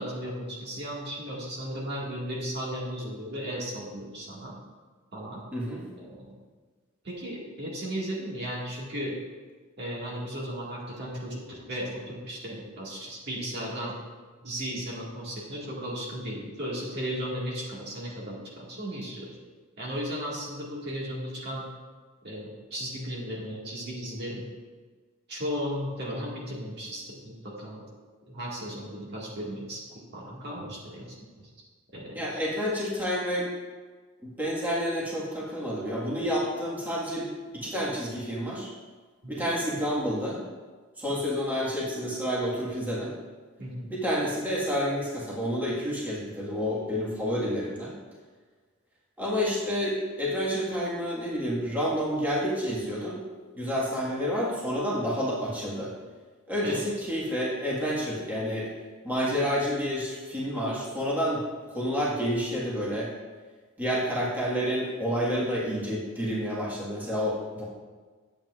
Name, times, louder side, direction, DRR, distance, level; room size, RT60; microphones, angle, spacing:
voice 1, 0.0-4.5 5.1-5.4 6.0-6.3 7.0-9.2 9.8-13.9 14.4-19.3 19.8-21.7 22.2-24.5 25.3-27.8 28.3-31.5 31.9-32.3 39.2-39.3 43.6-43.9 56.6-56.8, equal, 55° right, -5 dB, 1.8 m, -35 dB
voice 2, 32.1-33.5 34.2-37.2 37.5-38.7 39.3-40.4 41.0-43.1 43.9-47.9 49.2-53.2 53.5-55.9 56.5-58.7 59.0-61.4 61.7-63.1 63.8-67.6, equal, 10° right, -7 dB, 1.6 m, -29 dB
10.0 x 7.9 x 2.4 m, 1.4 s
head